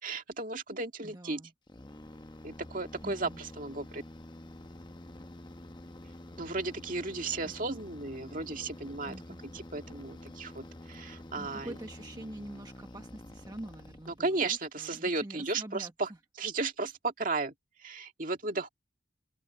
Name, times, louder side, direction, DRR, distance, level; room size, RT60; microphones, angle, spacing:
voice 1, 0.0-1.4 2.4-4.0 6.4-9.2 9.5-11.7 14.2-16.1 16.4-17.5 17.8-18.7, right 3 dB, 45° right, 2.2 m, -34 dB
voice 2, 1.0-1.5 3.0-3.4 7.4-7.5 9.1-9.4 11.4-16.2, right 1 dB, 20° right, 1.3 m, -45 dB
sound 1, 1.7-14.5, left 1 dB, 25° left, 0.9 m, -48 dB
open air
head